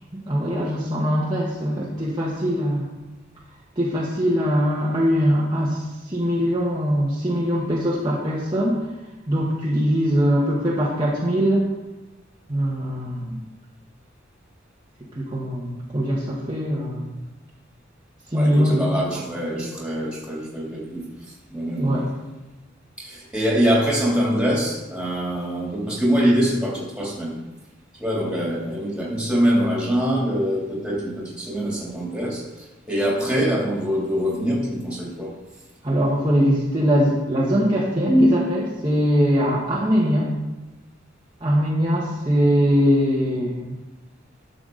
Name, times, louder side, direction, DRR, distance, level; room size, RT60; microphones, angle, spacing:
voice 1, 0.1-2.9 3.8-8.8 9.3-11.7 12.5-13.4 15.2-17.1 18.3-18.8 19.5-19.7 21.8-22.1 35.8-40.3 41.4-43.8, equal, 25° right, -6 dB, 1.3 m, -21 dB
voice 2, 18.3-21.0 21.5-22.0 23.0-27.4 28.0-35.3, equal, 5° right, -5 dB, 2.9 m, -24 dB
12.0 x 6.8 x 3.9 m, 1.1 s
head